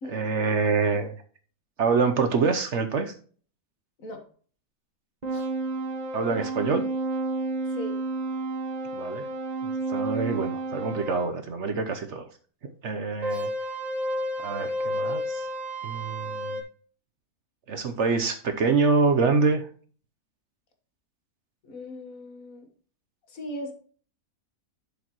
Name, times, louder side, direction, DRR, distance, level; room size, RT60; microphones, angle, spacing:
voice 1, 0.1-1.2 1.8-3.1 6.1-6.8 9.0-9.2 9.9-12.3 12.8-13.5 14.4-15.4 15.8-16.6 17.7-19.7, right 4 dB, 55° right, 8 dB, 1.0 m, -25 dB
sound 1, 5.2-11.3 13.2-16.6, right 1 dB, 30° right, 1.3 m, -31 dB
voice 2, 21.6-22.7 23.3-23.7, left 1 dB, 65° left, 4 dB, 1.9 m, -38 dB
11.0 x 5.2 x 3.0 m, 0.43 s
omnidirectional pair, 1.6 m